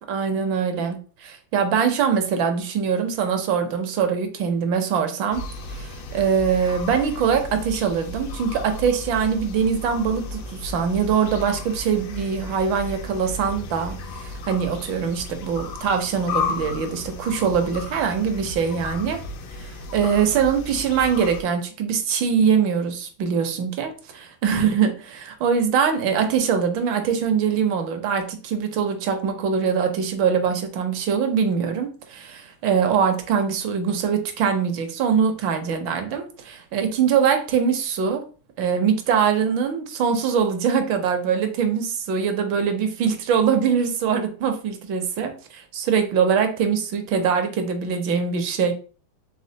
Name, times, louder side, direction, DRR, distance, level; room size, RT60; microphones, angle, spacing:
voice 1, 0.1-5.4 5.7-19.2 19.6-38.2 38.6-48.7, right 7 dB, 70° right, 6 dB, 1.4 m, -23 dB
sound 1, 5.3-21.4, left 3 dB, 75° left, 1.4 m, -34 dB
4.1 x 3.5 x 2.7 m, 0.37 s
omnidirectional pair, 2.2 m